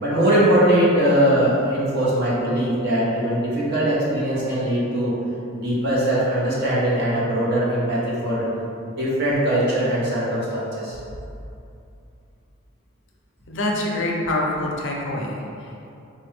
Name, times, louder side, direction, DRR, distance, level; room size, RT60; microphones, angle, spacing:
voice 1, 0.0-5.2 5.5-8.4 8.9-11.0, right 1 dB, 50° right, -7 dB, 0.9 m, -21 dB
voice 2, 13.5-15.9, left 1 dB, 60° left, -2 dB, 0.5 m, -26 dB
4.2 x 2.1 x 3.2 m, 2.6 s
head